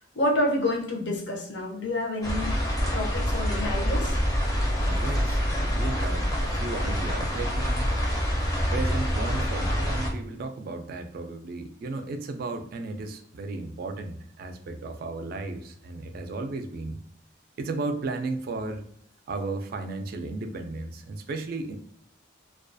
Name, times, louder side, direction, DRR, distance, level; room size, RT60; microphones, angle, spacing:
voice 1, 0.1-2.6 2.9-4.2, left 1 dB, 65° left, 0 dB, 0.6 m, -28 dB
sound 1, 2.2-10.1, equal, 20° left, 0.5 m, -26 dB
voice 2, 4.8-8.0 8.7-17.0 17.6-18.8 19.3-21.8, right 3 dB, 50° right, 6 dB, 0.3 m, -34 dB
2.3 x 2.3 x 2.5 m, 0.63 s
head